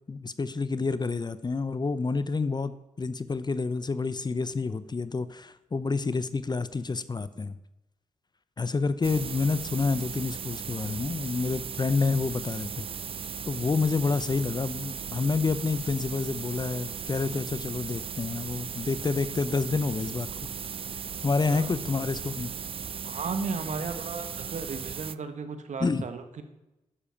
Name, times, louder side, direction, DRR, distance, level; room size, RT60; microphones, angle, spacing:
voice 1, 0.1-7.6 8.6-12.8 13.4-20.3 21.2-22.5 25.8-26.0, left 4 dB, 30° left, 15 dB, 0.7 m, -28 dB
sound 1, 9.0-25.2, right 7 dB, 45° right, 0.4 m, -37 dB
voice 2, 23.0-26.4, right 4 dB, 60° right, 8 dB, 1.3 m, -35 dB
10.0 x 7.0 x 5.8 m, 0.96 s
supercardioid pair, 45°, 13 cm